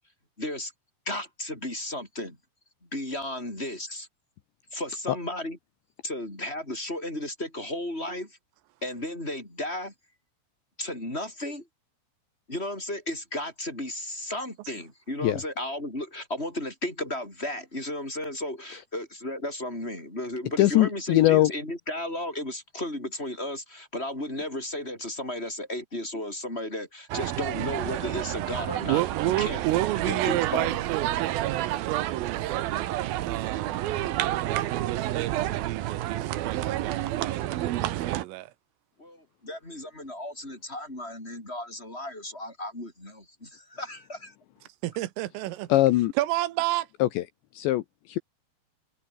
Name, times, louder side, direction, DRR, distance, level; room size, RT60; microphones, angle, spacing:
voice 1, 0.4-0.7 1.1-2.4 2.9-4.1 4.7-5.6 6.0-8.4 8.8-9.9 10.8-11.7 12.5-29.6 30.0-30.8 39.0-44.3, left 1 dB, 10° left, 7.1 m, -34 dB
voice 2, 20.6-21.5 45.7-46.1 47.0-47.2 47.5-48.2, left 15 dB, 75° left, 2.9 m, -21 dB
sound 1, 27.1-38.2, right 14 dB, 70° right, 2.4 m, -29 dB
voice 3, 28.9-32.6 33.2-33.9 34.4-38.5 44.8-45.7 46.2-46.9, right 17 dB, 85° right, 3.7 m, -31 dB
omnidirectional pair, 5.8 m